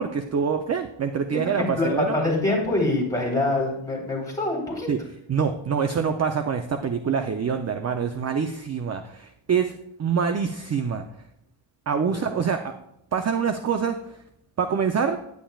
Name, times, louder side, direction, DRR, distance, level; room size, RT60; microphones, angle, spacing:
voice 1, 0.0-2.2 4.9-5.0 5.3-11.0 11.9-12.7 13.1-14.0 14.6-15.2, right 6 dB, 35° right, 7 dB, 0.5 m, -25 dB
voice 2, 1.3-4.9 12.1-12.3, left 2 dB, 5° left, -3 dB, 3.6 m, -25 dB
10.0 x 9.3 x 2.3 m, 0.77 s
wide cardioid pair, 140°, 50 cm